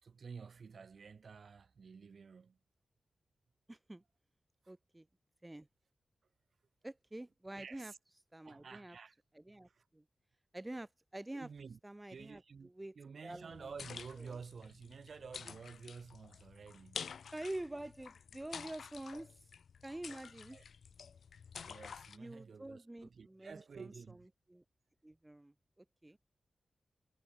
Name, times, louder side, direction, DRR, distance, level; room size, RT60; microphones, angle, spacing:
voice 1, 0.0-2.6 4.6-4.7 7.6-8.0 8.4-9.2 9.7-9.8 11.3-11.8 12.1-17.1 20.5-20.6 21.6-24.3, right 5 dB, 55° right, 2.3 m, -51 dB
voice 2, 3.7-4.0 4.7-5.1 5.4-5.7 6.8-7.9 8.3-9.0 9.3-10.0 10.5-11.5 11.8-13.0 13.2-13.7 14.3-14.4 17.3-19.4 19.8-20.6 22.2-24.2 24.5-24.6 25.0-26.2, right 1 dB, 10° right, 0.7 m, -47 dB
sound 1, 13.5-22.2, left 6 dB, 80° left, 0.5 m, -50 dB
wide cardioid pair, 165°, 0 cm